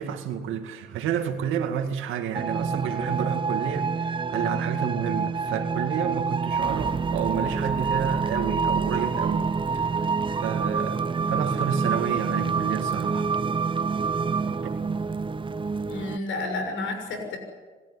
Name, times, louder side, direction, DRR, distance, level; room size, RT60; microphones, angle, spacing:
voice 1, 0.0-9.5 9.7-9.8 10.3-13.3 14.4-14.6, right 8 dB, 90° right, 6 dB, 2.1 m, -30 dB
sound 1, 2.3-16.2, right 5 dB, 25° right, 0.7 m, -27 dB
voice 2, 15.8-17.4, left 2 dB, 80° left, 4 dB, 6.5 m, -31 dB
27.5 x 14.0 x 10.0 m, 1.4 s
cardioid pair, 90°, 20 cm